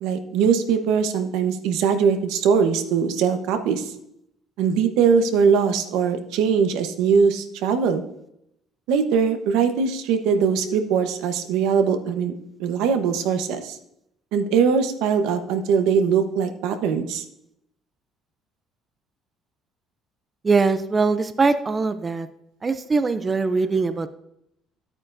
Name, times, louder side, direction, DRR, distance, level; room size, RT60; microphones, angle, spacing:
voice 1, 0.0-3.9 4.6-8.0 8.9-12.3 12.6-13.8 14.3-17.2, right 6 dB, 85° right, 7 dB, 1.0 m, -21 dB
voice 2, 20.4-22.3 22.6-24.1, right 4 dB, 20° right, 11 dB, 0.4 m, -21 dB
11.0 x 8.8 x 2.6 m, 0.79 s
cardioid pair, 155°, 0 cm